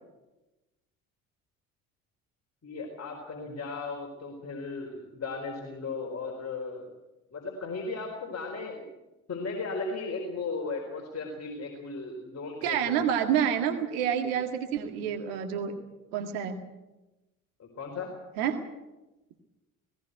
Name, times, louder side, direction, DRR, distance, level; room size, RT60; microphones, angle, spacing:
voice 1, 2.6-6.9 7.3-8.9 9.3-12.9 17.6-18.1, left 3 dB, 40° left, 1 dB, 4.4 m, -36 dB
voice 2, 12.6-15.7 16.1-16.6 18.4-18.6, right 8 dB, 75° right, 5 dB, 2.0 m, -28 dB
18.0 x 18.0 x 8.2 m, 1.0 s
hypercardioid pair, 60°, 40 cm